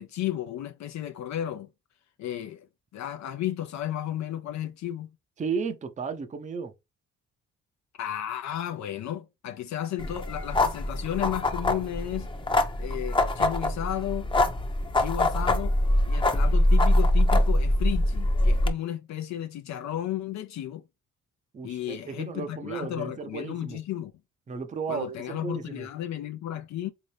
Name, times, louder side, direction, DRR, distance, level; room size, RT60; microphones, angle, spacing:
voice 1, 0.0-1.7 2.2-2.7 2.9-5.2 8.0-12.3 12.8-14.3 15.0-15.8 16.1-20.8 21.6-24.1 24.9-26.9, left 12 dB, 65° left, 0.5 m, -33 dB
voice 2, 5.4-6.7 21.5-23.8 24.5-25.9, right 5 dB, 25° right, 0.6 m, -34 dB
sound 1, 10.0-18.7, left 1 dB, 15° left, 0.7 m, -24 dB
3.7 x 2.7 x 3.2 m
cardioid pair, 90°, 30 cm